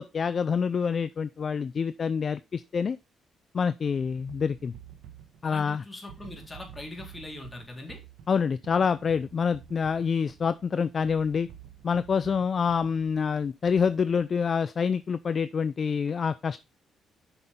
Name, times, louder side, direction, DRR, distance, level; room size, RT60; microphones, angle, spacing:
voice 1, 0.0-3.0 3.5-4.7 5.4-5.8 8.3-11.5 11.8-16.6, left 6 dB, 45° left, 0.4 m, -27 dB
sound 1, 3.8-13.4, right 9 dB, 90° right, 1.4 m, -50 dB
voice 2, 5.4-8.0, left 2 dB, 25° left, 3.5 m, -41 dB
7.9 x 6.0 x 3.6 m
cardioid pair, 90°, 0 cm